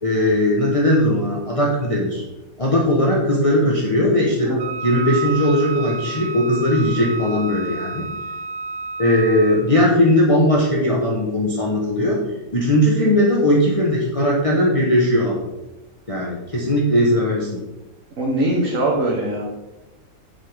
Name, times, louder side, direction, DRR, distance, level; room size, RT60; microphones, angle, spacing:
voice 1, 0.0-2.2 2.6-4.5 4.8-8.1 9.0-12.2 12.5-15.5 16.1-17.6, left 1 dB, 25° left, -3 dB, 1.2 m, -18 dB
Wind instrument woodwind instrument, 4.6-9.8, right 4 dB, 85° right, 1.4 m, -30 dB
voice 2, 18.2-19.4, right 1 dB, 65° right, -4 dB, 1.7 m, -21 dB
9.8 x 7.5 x 3.6 m, 1.0 s
omnidirectional pair, 1.5 m